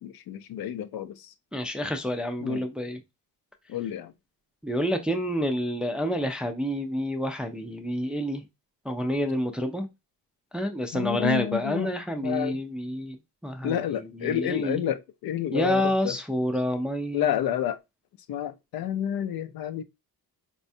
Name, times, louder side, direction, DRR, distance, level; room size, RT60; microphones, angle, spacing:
voice 1, 0.0-1.3 2.4-2.6 3.7-4.1 10.9-11.9 12.2-12.6 13.6-16.2 17.1-17.8 18.3-19.8, left 10 dB, 70° left, 0.5 m, -29 dB
voice 2, 1.5-3.0 4.6-8.4 8.9-9.9 10.5-13.2 13.4-13.8 14.2-14.8 15.5-17.2, equal, 5° right, 0.3 m, -28 dB
4.1 x 2.3 x 2.6 m
cardioid pair, 115°, 38 cm